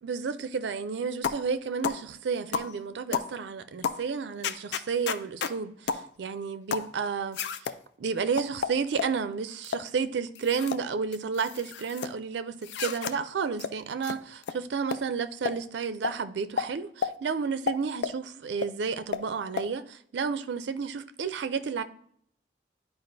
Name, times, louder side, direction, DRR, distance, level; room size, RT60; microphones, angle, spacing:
voice 1, 0.0-7.7 8.0-21.8, right 5 dB, 80° right, 0.4 m, -31 dB
sound 1, 1.2-1.5 1.8-2.0 2.5-2.7 3.1-3.3 3.8-4.0 4.4-5.6 5.9-6.1 6.7-6.9 7.3-7.8 8.4-9.2 9.6-9.9 10.4-10.8 11.1-12.1 12.6-13.2 13.6-13.7 14.0-14.2 14.4-14.6 14.9-15.0 15.5-15.6 16.0-16.2 16.6-16.7 17.0-17.1 17.7-18.2 18.6-18.7 19.1-19.2 19.6-19.7, left 6 dB, 75° left, 0.4 m, -31 dB
11.0 x 4.6 x 2.6 m
head